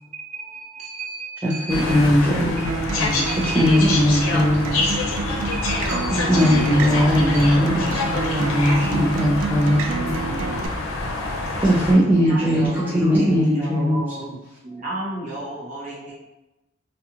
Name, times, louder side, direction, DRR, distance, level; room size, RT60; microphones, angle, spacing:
voice 1, 0.1-2.1 3.3-4.0 5.4-7.0 7.3-7.5 11.3-11.7 12.2-14.3 14.6-16.1, right 2 dB, 40° right, -6 dB, 0.9 m, -34 dB
voice 2, 1.4-2.7 3.5-4.9 5.3-5.4 6.3-9.9 11.6-14.0, equal, 10° right, -5 dB, 0.3 m, -19 dB
sound 1, 1.7-11.9, left 2 dB, 85° left, 0.5 m, -26 dB
voice 3, 2.6-3.3 7.2-7.5 7.9-8.2 8.8-9.1 10.0-10.5 11.7-12.4 13.1-14.4, left 2 dB, 45° left, -3 dB, 0.7 m, -34 dB
Acoustic guitar, 2.7-10.7, right 5 dB, 90° right, 0.3 m, -29 dB
2.5 x 2.4 x 2.8 m, 0.97 s
head